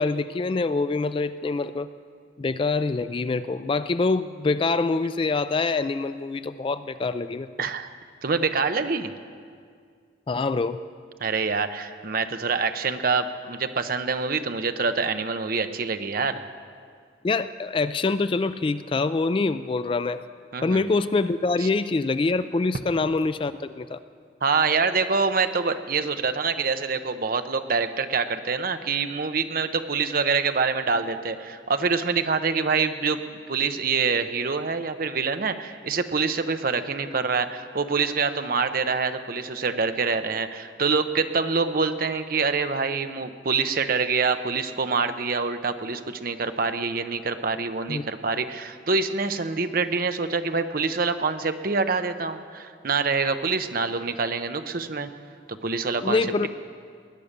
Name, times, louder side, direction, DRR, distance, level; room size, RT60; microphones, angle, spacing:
voice 1, 0.0-1.9 2.4-7.5 10.3-10.8 17.2-20.2 20.6-24.0 47.9-48.1 56.0-56.5, left 3 dB, 25° left, 12 dB, 0.3 m, -25 dB
voice 2, 7.6-7.9 8.2-9.1 11.2-16.4 20.5-20.9 21.6-21.7 24.4-33.2 33.5-55.1 55.5-56.5, right 4 dB, 50° right, 9 dB, 0.7 m, -26 dB
19.5 x 10.0 x 6.7 m, 2.1 s
head